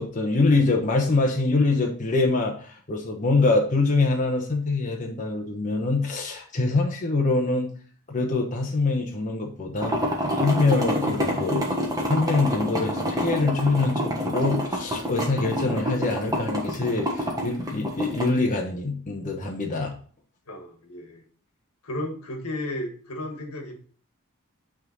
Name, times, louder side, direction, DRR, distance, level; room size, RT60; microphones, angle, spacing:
voice 1, 0.0-7.7 8.1-9.9 10.3-11.7 12.1-19.9, left 3 dB, 35° left, 0 dB, 1.0 m, -24 dB
Coffee Maker, 9.8-18.3, equal, 15° right, 1.3 m, -27 dB
voice 2, 20.5-21.2 21.8-23.8, left 1 dB, 80° left, 4 dB, 1.5 m, -33 dB
8.9 x 3.7 x 3.9 m, 0.44 s
head